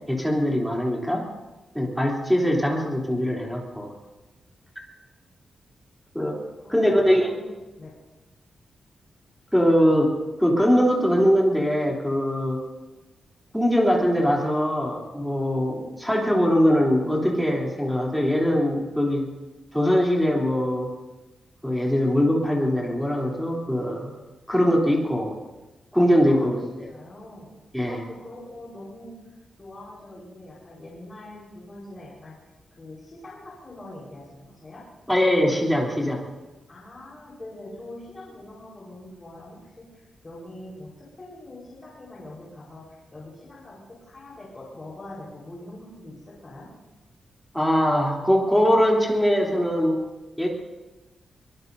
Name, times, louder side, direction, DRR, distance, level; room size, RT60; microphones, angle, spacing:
voice 1, 0.1-1.2 1.7-3.9 6.1-6.4 6.7-7.3 9.5-12.6 13.5-19.3 19.7-20.9 21.6-24.1 24.5-25.3 25.9-26.7 27.7-28.0 35.1-36.2 47.5-50.0 50.4-50.5, equal, ahead, -3 dB, 3.3 m, -22 dB
voice 2, 6.6-7.4 7.8-7.9 26.3-26.5 26.9-27.5 27.8-29.2 29.6-32.3 32.8-34.8 36.7-40.9 41.2-46.7, left 1 dB, 25° left, -7 dB, 4.5 m, -43 dB
23.5 x 23.0 x 2.7 m, 1.1 s
wide cardioid pair, 180°, 0 cm